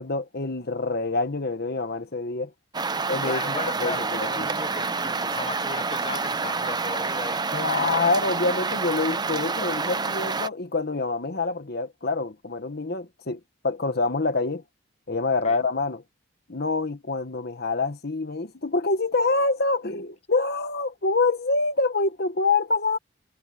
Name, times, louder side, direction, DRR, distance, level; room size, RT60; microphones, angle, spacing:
voice 1, 0.0-2.5 3.1-3.5 3.8-4.5 7.5-13.4 13.6-14.6 15.1-16.0 16.5-23.0, left 3 dB, 55° left, 1.3 m, -26 dB
sound 1, 2.7-10.5, right 4 dB, 20° right, 0.7 m, -28 dB
voice 2, 3.2-7.4 15.4-15.6, left 3 dB, 35° left, 1.3 m, -36 dB
head